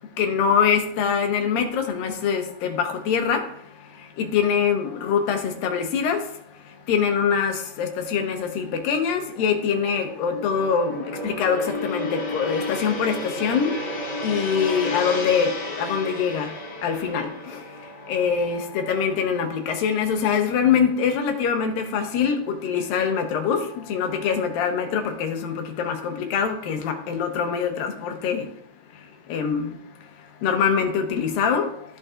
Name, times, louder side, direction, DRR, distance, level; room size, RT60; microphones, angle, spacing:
voice 1, 0.2-3.4 4.2-6.2 6.9-13.7 14.2-16.5 16.8-17.6 18.1-23.6 23.9-28.4 29.3-29.7 30.4-31.7, left 7 dB, 75° left, 4 dB, 2.5 m, -24 dB
Gong, 8.0-20.4 20.7-21.0, left 1 dB, 55° left, 3.7 m, -33 dB
14.5 x 5.3 x 2.4 m, 0.70 s
omnidirectional pair, 4.4 m